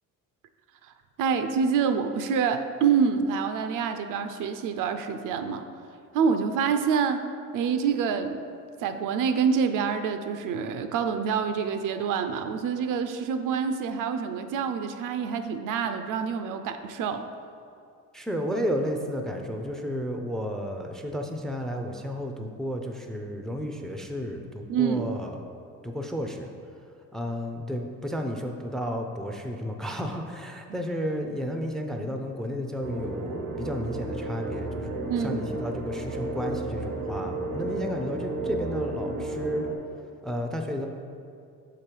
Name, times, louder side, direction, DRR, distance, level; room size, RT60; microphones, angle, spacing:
voice 1, 1.2-5.6 6.1-8.4 8.8-17.3 24.7-25.1 35.0-35.4, right 6 dB, 70° right, 8 dB, 0.6 m, -26 dB
voice 2, 18.1-25.4 25.8-26.5 27.1-39.7 40.2-40.9, equal, ahead, 4 dB, 0.4 m, -32 dB
sound 1, 32.8-39.7, right 2 dB, 90° right, 1.0 m, -32 dB
6.6 x 5.1 x 4.5 m, 2.4 s
cardioid pair, 125°, 33 cm